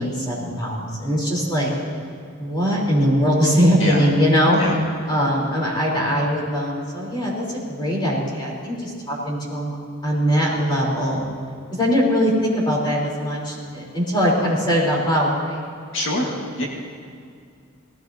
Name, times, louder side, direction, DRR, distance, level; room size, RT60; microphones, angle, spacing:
voice 1, 0.0-1.7 2.4-4.6 5.1-9.8 10.0-11.3 11.7-15.6 16.2-16.6, equal, 20° left, -5 dB, 3.7 m, -21 dB
voice 2, 15.9-16.3 16.6-16.7, left 1 dB, 65° left, -2 dB, 1.8 m, -24 dB
19.0 x 16.5 x 2.8 m, 2.3 s
head